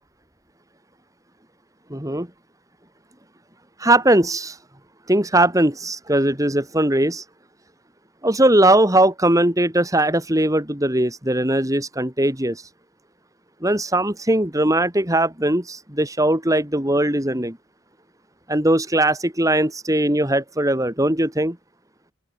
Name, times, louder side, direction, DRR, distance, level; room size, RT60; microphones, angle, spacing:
voice 1, 1.9-2.3 3.8-4.6 5.1-7.2 8.2-12.6 13.6-17.6 18.5-21.6, right 1 dB, 20° right, 3.5 m, -19 dB
open air
head